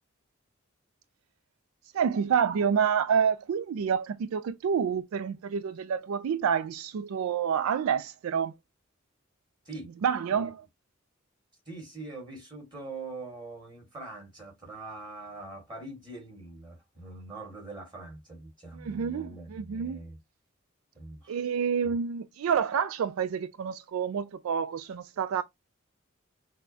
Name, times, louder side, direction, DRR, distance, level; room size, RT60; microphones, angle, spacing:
voice 1, 1.9-8.5 10.0-10.6 18.8-20.0 21.3-25.4, right 7 dB, 85° right, 0.3 m, -28 dB
voice 2, 11.7-20.2 20.9-21.5 21.8-22.0, right 2 dB, 20° right, 2.1 m, -43 dB
6.2 x 2.1 x 2.7 m
head